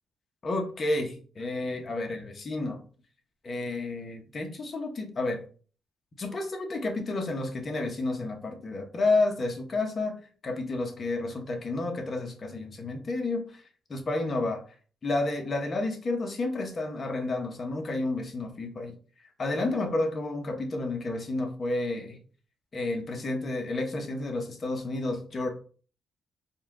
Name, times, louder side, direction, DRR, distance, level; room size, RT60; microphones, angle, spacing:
voice 1, 0.4-2.8 3.4-5.4 6.2-10.2 10.4-13.6 13.9-14.6 15.0-18.9 19.4-22.2 22.7-25.5, left 2 dB, 35° left, 3 dB, 0.9 m, -30 dB
4.1 x 2.3 x 3.7 m, 0.40 s
cardioid pair, 120°, 0 cm